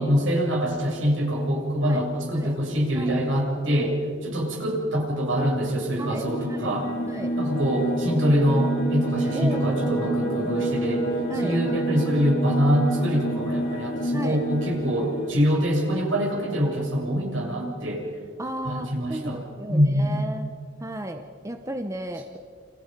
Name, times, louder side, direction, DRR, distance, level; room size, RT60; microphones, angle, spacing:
voice 1, 0.0-4.0 4.2-6.9 7.4-11.1 11.4-18.1 18.6-19.4 19.7-20.1, equal, 75° right, -1 dB, 7.5 m, -24 dB
voice 2, 3.7-4.0 6.0-6.7 7.0-7.3 9.3-10.7 11.3-11.9 14.1-14.4 18.4-20.5 20.8-22.4, right 1 dB, 15° right, 6 dB, 1.0 m, -35 dB
sound 1, 6.1-15.3, right 1 dB, 65° left, 4.8 m, -28 dB
29.0 x 28.5 x 5.4 m, 2.2 s
head